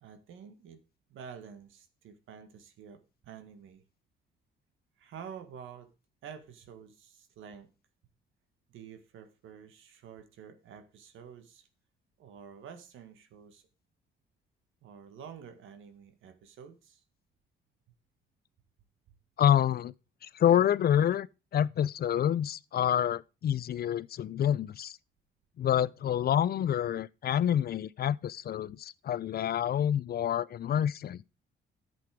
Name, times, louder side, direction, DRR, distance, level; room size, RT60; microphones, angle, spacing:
voice 1, 0.0-0.8 1.1-3.8 5.0-5.9 6.2-7.7 8.7-11.7 12.2-13.6 14.8-17.0 19.1-19.2, right 7 dB, 80° right, 1.8 m, -49 dB
voice 2, 19.4-19.9 20.2-21.3 21.5-25.0 25.6-31.2, left 10 dB, 50° left, 0.5 m, -27 dB
10.5 x 7.8 x 4.9 m
cardioid pair, 90°, 20 cm